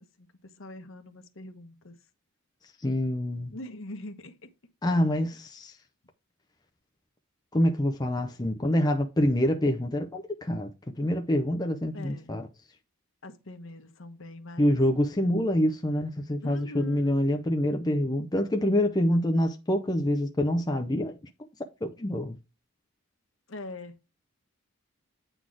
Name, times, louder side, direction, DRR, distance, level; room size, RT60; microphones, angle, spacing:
voice 1, 0.0-2.0 3.5-4.5 11.9-12.3 13.2-14.8 16.4-17.2 23.5-23.9, left 2 dB, 60° left, 1.1 m, -43 dB
voice 2, 2.8-3.5 4.8-5.8 7.5-10.7 11.0-12.5 14.6-21.2 21.8-22.4, left 1 dB, 20° left, 0.6 m, -26 dB
9.1 x 4.1 x 4.8 m
head